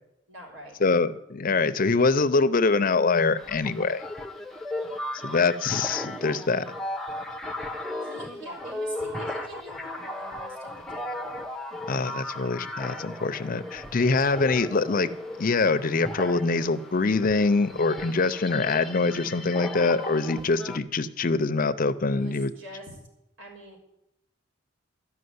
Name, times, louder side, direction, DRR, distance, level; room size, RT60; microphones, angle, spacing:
voice 1, 0.3-0.8 8.0-11.3 22.1-23.0 23.4-23.8, right 1 dB, 75° right, -1 dB, 4.0 m, -44 dB
voice 2, 0.8-4.0 5.2-6.7 11.9-15.1 15.4-22.5, left 3 dB, 45° left, 11 dB, 0.6 m, -24 dB
sound 1, 3.4-20.8, left 1 dB, ahead, 0.7 m, -36 dB
13.0 x 6.0 x 9.5 m, 0.85 s
head